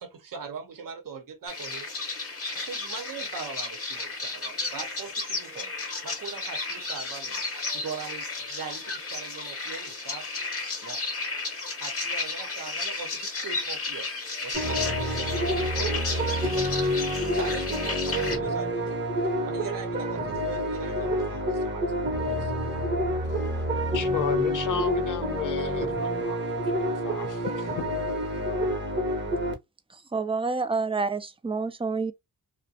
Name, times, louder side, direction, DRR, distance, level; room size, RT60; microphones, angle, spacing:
voice 1, 0.0-1.9 2.5-5.7 6.0-10.4 10.8-11.0 11.8-22.5, right 6 dB, 65° right, 0.8 m, -41 dB
sound 1, 1.5-18.4, left 3 dB, 40° left, 0.9 m, -33 dB
sound 2, 14.5-29.5, equal, 30° right, 0.9 m, -28 dB
voice 2, 23.9-26.4 26.7-27.9, left 7 dB, 60° left, 0.5 m, -33 dB
voice 3, 29.9-32.1, right 4 dB, 15° right, 0.4 m, -28 dB
2.3 x 2.1 x 2.6 m
cardioid pair, 65°, 35 cm